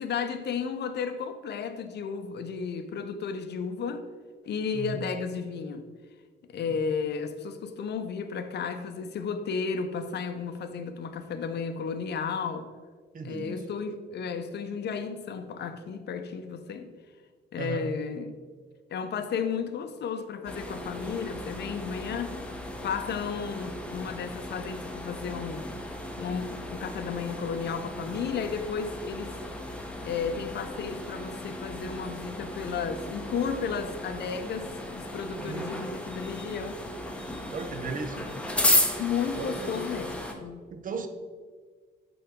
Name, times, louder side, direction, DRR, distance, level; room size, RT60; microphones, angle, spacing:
voice 1, 0.0-4.0 4.5-5.9 6.5-12.7 13.2-16.9 17.5-18.4 18.9-22.4 22.8-25.7 26.2-29.4 30.0-36.8 38.1-38.2 39.0-40.6, left 6 dB, 60° left, 9 dB, 0.6 m, -33 dB
voice 2, 13.1-13.6 17.6-17.9 35.4-35.7 37.5-38.2 39.3-40.1 40.7-41.1, right 5 dB, 45° right, 8 dB, 0.8 m, -36 dB
sound 1, 20.5-40.3, left 1 dB, 5° left, 0.9 m, -34 dB
8.9 x 4.0 x 3.6 m, 1.5 s
cardioid pair, 90°, 20 cm